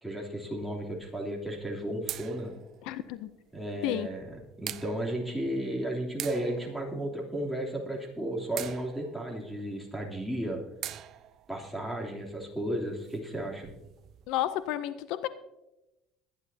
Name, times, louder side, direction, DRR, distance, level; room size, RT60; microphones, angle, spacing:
voice 1, 0.0-2.5 3.5-10.6 11.5-13.7, right 1 dB, ahead, -1 dB, 3.0 m, -34 dB
sound 1, 0.6-14.7, right 12 dB, 55° right, 0.5 m, -46 dB
voice 2, 2.8-3.3 3.8-4.1 14.3-15.3, left 13 dB, 80° left, 14 dB, 0.5 m, -31 dB
21.0 x 10.0 x 2.8 m, 0.95 s
cardioid pair, 115°, 0 cm